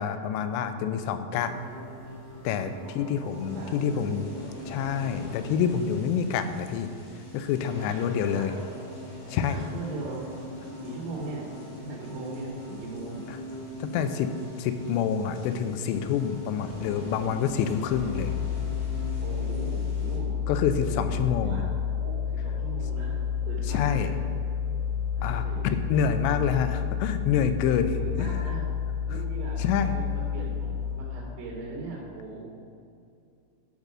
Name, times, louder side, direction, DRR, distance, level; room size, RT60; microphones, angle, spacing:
voice 1, 0.0-1.5 2.4-4.3 4.7-6.9 7.3-8.5 9.3-9.6 13.8-14.3 14.6-18.3 20.5-21.6 23.7-24.1 25.2-28.4 29.6-30.0, left 7 dB, 90° left, 9 dB, 2.8 m, -27 dB
sound 1, 1.3-20.2, equal, 40° left, 2.4 m, -41 dB
voice 2, 2.8-4.5 7.8-8.7 9.5-10.2 10.6-13.2 17.5-17.6 19.2-20.4 20.8-21.7 21.9-23.2 23.5-24.2 25.1-26.4 27.9-28.6 29.1-32.4, right 3 dB, 70° right, -4 dB, 4.2 m, -40 dB
sound 2, 17.9-30.9, left 7 dB, ahead, 1.0 m, -30 dB
12.0 x 5.2 x 6.2 m, 2.5 s
omnidirectional pair, 4.9 m